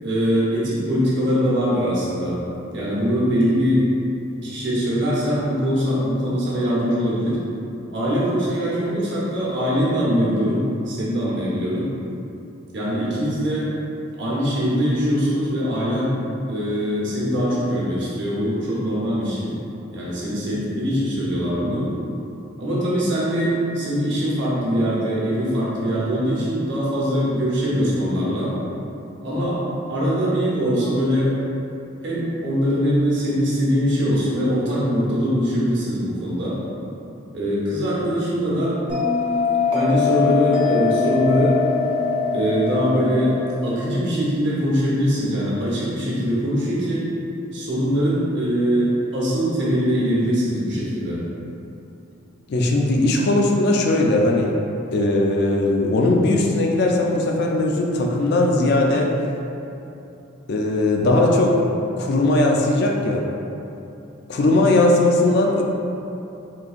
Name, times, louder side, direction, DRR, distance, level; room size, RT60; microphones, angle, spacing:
voice 1, 0.0-2.4 2.7-3.9 4.4-7.4 7.9-11.9 12.7-13.7 14.2-16.1 16.5-19.5 19.9-21.9 22.6-28.5 29.2-29.6 29.9-31.3 32.0-36.6 37.3-38.8 39.7-41.6 42.3-43.3 43.6-47.0 47.5-51.2, equal, 60° right, -8 dB, 1.0 m, -22 dB
Bell, 38.9-44.0, left 6 dB, 25° right, 0.5 m, -22 dB
voice 2, 52.5-54.5 54.9-59.2 60.5-61.6 62.0-63.3 64.3-65.6, left 2 dB, 50° left, 0 dB, 0.3 m, -19 dB
3.9 x 2.8 x 2.4 m, 2.8 s
head